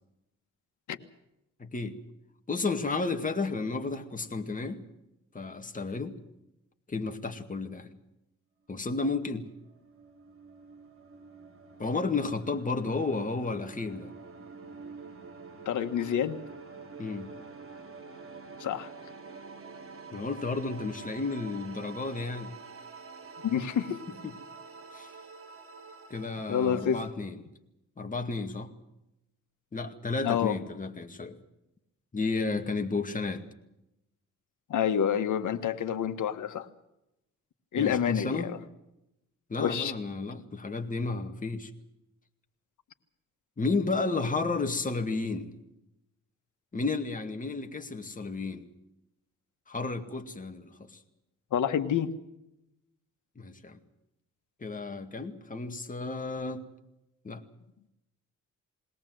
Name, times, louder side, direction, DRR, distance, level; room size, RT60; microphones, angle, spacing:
voice 1, 1.6-2.0 2.5-4.8 5.3-6.2 6.9-7.9 8.7-9.5 11.8-14.1 17.0-17.3 20.1-22.5 24.1-24.3 24.9-25.1 26.1-27.4 28.0-28.7 29.7-31.4 32.1-33.5 37.8-38.5 39.5-41.7 43.6-45.5 46.7-48.7 49.7-51.0 53.4-53.8 54.6-56.7 57.2-57.4, left 3 dB, 25° left, 6 dB, 2.1 m, -32 dB
sound 1, 8.8-27.1, right 4 dB, 45° right, 3.5 m, -47 dB
voice 2, 15.6-16.4 18.6-18.9 23.4-24.0 26.5-27.0 30.2-30.5 34.7-36.7 37.7-38.5 39.6-39.9 51.5-52.1, left 8 dB, 75° left, 9 dB, 1.6 m, -28 dB
21.5 x 18.0 x 7.8 m, 0.87 s
cardioid pair, 105°, 31 cm